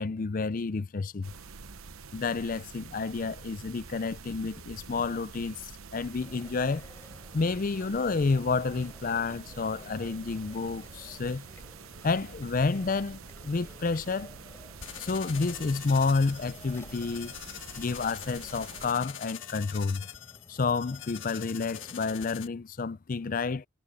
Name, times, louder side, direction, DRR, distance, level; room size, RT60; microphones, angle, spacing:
voice 1, 0.0-1.3 2.1-6.9 7.3-11.4 12.0-14.3 15.0-17.3 17.8-20.0 20.5-23.7, left 4 dB, 40° left, 0.4 m, -30 dB
sound 1, 1.2-18.9, right 5 dB, 80° right, 0.9 m, -47 dB
Chewing mastication, 6.2-22.3, left 1 dB, 10° left, 7.5 m, -54 dB
sound 2, 14.8-22.5, left 10 dB, 60° left, 1.7 m, -44 dB
head